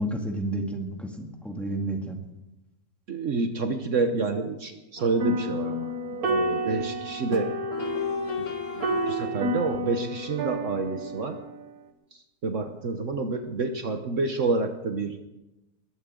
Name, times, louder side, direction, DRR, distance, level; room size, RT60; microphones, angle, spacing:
voice 1, 0.0-2.2, right 1 dB, ahead, 1 dB, 2.2 m, -31 dB
voice 2, 3.1-5.9 6.2-7.5 8.9-11.4 12.1-15.2, right 3 dB, 60° right, 6 dB, 1.3 m, -28 dB
sound 1, 5.0-11.5, equal, 80° right, 1.8 m, -30 dB
sound 2, 6.4-6.5 7.7-9.7, left 1 dB, 60° left, 1.9 m, -34 dB
20.5 x 15.5 x 3.8 m, 0.98 s
omnidirectional pair, 1.5 m